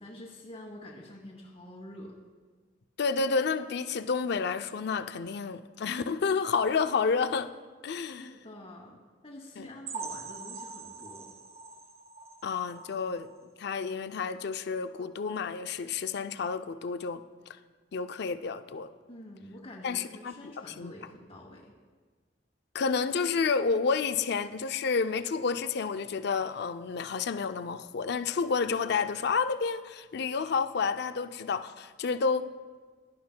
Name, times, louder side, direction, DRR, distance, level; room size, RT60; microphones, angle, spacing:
voice 1, 0.0-2.1 8.2-11.3 19.1-21.8, left 1 dB, 35° left, -5 dB, 1.3 m, -47 dB
voice 2, 3.0-7.5 7.8-8.3 9.6-9.7 12.4-13.3 13.6-17.2 17.9-18.9 19.8-20.3 20.8-20.9 22.7-32.5, left 5 dB, 65° left, 10 dB, 0.4 m, -30 dB
sound 1, 9.9-13.5 13.9-14.0 14.4-14.5 15.0-15.1, right 4 dB, 35° right, 0.7 m, -43 dB
16.0 x 11.5 x 2.2 m, 1.4 s
head